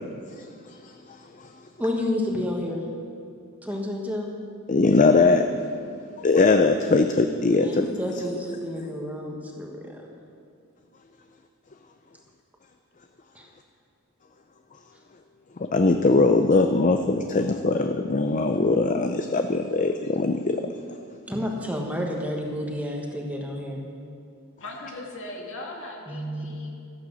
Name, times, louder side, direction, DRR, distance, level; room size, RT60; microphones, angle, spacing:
voice 1, 1.8-2.9 3.6-4.3 7.6-10.1 13.3-13.5 21.3-23.8 26.1-26.5, left 1 dB, 5° right, 0 dB, 1.4 m, -30 dB
voice 2, 4.7-5.5 6.2-7.9 15.7-20.6, left 3 dB, 35° left, 7 dB, 0.5 m, -21 dB
voice 3, 24.6-26.7, left 2 dB, 60° left, 0 dB, 2.2 m, -38 dB
13.5 x 10.5 x 6.3 m, 2.4 s
head